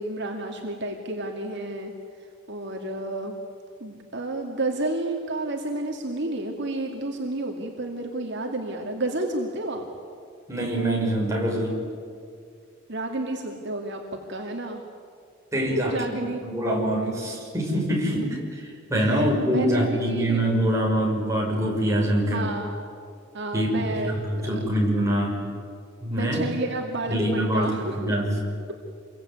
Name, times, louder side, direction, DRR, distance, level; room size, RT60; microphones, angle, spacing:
voice 1, 0.0-3.4 3.8-9.9 12.9-14.0 14.3-14.8 15.7-16.4 19.0-20.4 22.3-22.8 23.3-24.2 24.5-24.6 26.1-28.2, right 2 dB, 55° right, 1 dB, 2.4 m, -31 dB
voice 2, 10.5-11.8 15.5-16.0 16.4-22.5 23.5-25.4 26.0-26.4 27.1-28.4, equal, 15° right, -2 dB, 6.2 m, -24 dB
27.5 x 23.0 x 9.4 m, 2.3 s
head